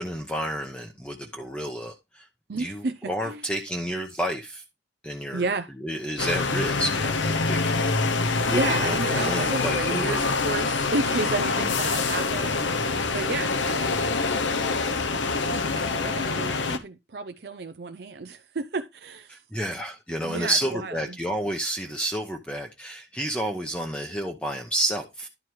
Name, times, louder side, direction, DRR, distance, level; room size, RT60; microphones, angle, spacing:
voice 1, 0.0-2.3 2.6-4.6 5.0-5.4 5.8-7.8 8.5-10.3 19.3-25.3, right 1 dB, 5° left, 0.8 m, -30 dB
voice 2, 2.5-3.5 5.3-5.7 8.5-14.0 14.6-19.4 20.2-21.2, right 3 dB, 60° right, 0.5 m, -32 dB
sound 1, 6.2-16.8, left 4 dB, 85° left, 1.0 m, -25 dB
11.0 x 4.6 x 4.6 m
head